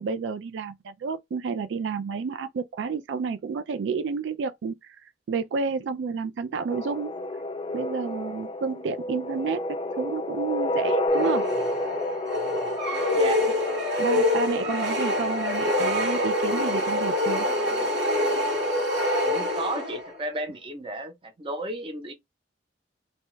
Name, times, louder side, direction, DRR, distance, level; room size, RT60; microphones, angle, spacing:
voice 1, 0.0-7.2 7.7-11.5 14.0-17.5, right 5 dB, 85° right, 0.3 m, -30 dB
sound 1, 6.7-15.3, left 2 dB, 30° left, 0.3 m, -30 dB
sound 2, 11.1-20.2, left 1 dB, 70° right, 1.4 m, -26 dB
voice 2, 19.2-22.1, right 2 dB, 30° right, 0.7 m, -33 dB
2.7 x 2.2 x 3.1 m
head